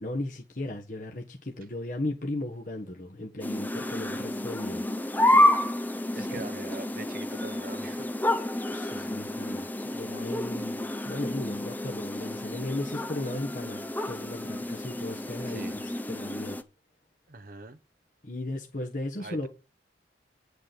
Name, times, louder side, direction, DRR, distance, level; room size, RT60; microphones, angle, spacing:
voice 1, 0.0-4.8 6.1-6.5 8.7-16.6 18.2-19.5, left 1 dB, 45° left, 1.4 m, -36 dB
sound 1, 3.4-16.6, left 1 dB, 10° left, 0.7 m, -29 dB
voice 2, 6.1-8.1 15.5-15.8 17.3-17.8 19.2-19.5, right 2 dB, 50° right, 1.0 m, -43 dB
9.9 x 6.7 x 6.8 m
head